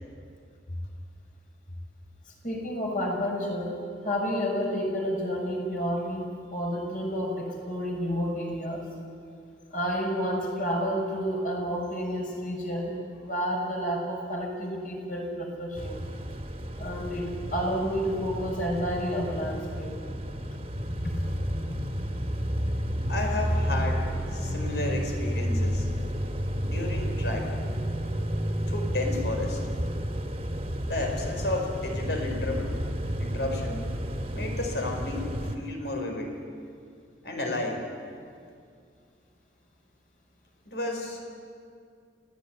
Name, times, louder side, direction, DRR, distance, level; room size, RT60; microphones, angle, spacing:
voice 1, 2.4-3.8 4.0-8.8 9.7-12.9 13.2-16.0 16.8-19.9 21.0-21.1, equal, 45° left, -1 dB, 6.5 m, -30 dB
sound 1, 15.8-35.6, equal, 35° right, 1.9 m, -31 dB
voice 2, 23.1-25.9 26.6-27.5 28.7-29.6 30.8-32.7 33.2-33.9 34.3-36.3 37.2-37.9 40.7-41.3, left 2 dB, 75° left, 2 dB, 4.7 m, -32 dB
27.5 x 17.0 x 9.7 m, 2.3 s
head